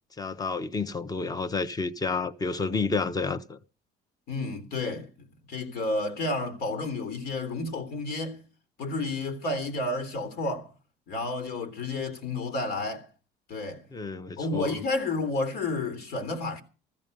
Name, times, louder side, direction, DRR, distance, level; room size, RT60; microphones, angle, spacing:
voice 1, 0.2-3.6 13.9-14.8, left 4 dB, 20° left, 1.1 m, -30 dB
voice 2, 4.3-5.1 5.5-8.4 8.8-10.7 11.1-13.1 13.5-13.8 14.4-16.6, left 2 dB, 75° left, 3.3 m, -31 dB
14.5 x 14.0 x 5.4 m
cardioid pair, 110°, 17 cm